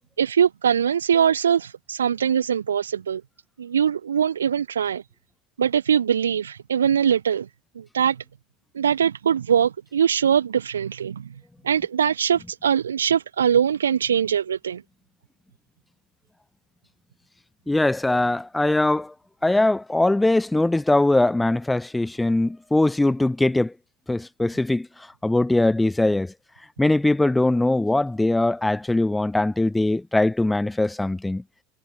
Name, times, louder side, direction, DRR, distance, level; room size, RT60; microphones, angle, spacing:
voice 1, 0.2-3.2 3.6-5.0 5.6-7.5 7.8-8.2 8.7-11.3 11.6-14.8, right 8 dB, 75° right, 0.8 m, -22 dB
voice 2, 17.7-19.1 19.4-23.7 24.1-24.9 25.2-26.3 26.8-31.4, left 2 dB, 10° left, 1.8 m, -21 dB
figure-of-eight pair, 70°, 0 cm